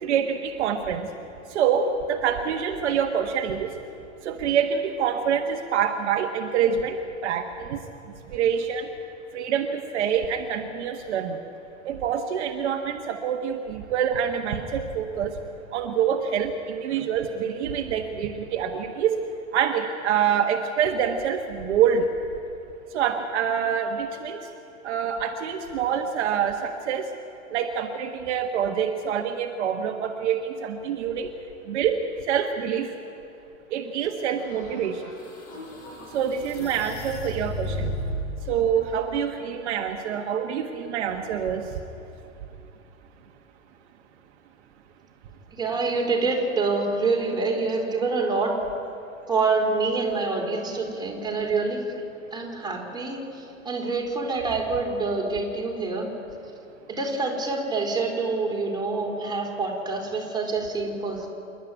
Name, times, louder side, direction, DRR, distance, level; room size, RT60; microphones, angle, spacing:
voice 1, 0.0-1.1 1.5-3.7 4.2-7.0 7.2-7.8 8.3-8.9 9.3-11.4 11.8-15.3 15.7-19.2 19.5-22.0 22.9-24.4 24.8-27.0 27.5-31.3 31.7-32.0 32.3-32.9 33.7-35.0 36.1-37.9 38.5-41.6, right 8 dB, 55° right, 4 dB, 1.5 m, -26 dB
sound 1, 34.4-38.4, equal, 35° left, 6.1 m, -34 dB
voice 2, 45.5-48.5 49.3-51.9 52.3-56.1 56.9-61.3, right 3 dB, 10° right, 0 dB, 4.4 m, -26 dB
27.5 x 12.0 x 9.4 m, 2.9 s
figure-of-eight pair, 100°, 40 cm